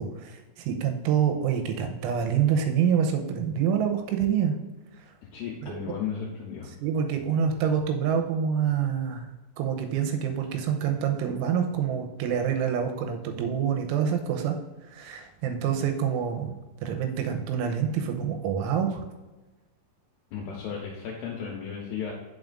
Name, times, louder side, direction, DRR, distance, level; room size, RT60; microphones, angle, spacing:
voice 1, 0.0-4.5 5.6-5.9 6.8-9.3 9.6-14.6 14.9-19.0, right 8 dB, 85° right, 5 dB, 3.1 m, -27 dB
voice 2, 5.3-6.7 20.3-22.1, left 7 dB, 85° left, -1 dB, 2.3 m, -34 dB
8.8 x 5.9 x 2.4 m, 1.2 s
omnidirectional pair, 5.5 m